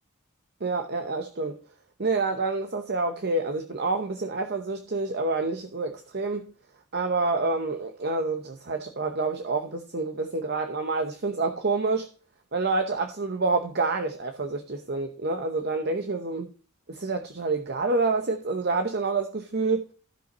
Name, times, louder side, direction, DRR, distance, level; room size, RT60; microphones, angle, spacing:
voice 1, 0.6-1.5 2.0-6.5 6.9-12.1 12.5-16.4 16.9-19.9, right 3 dB, 45° right, 0.8 m, -28 dB
15.5 x 5.7 x 3.0 m
head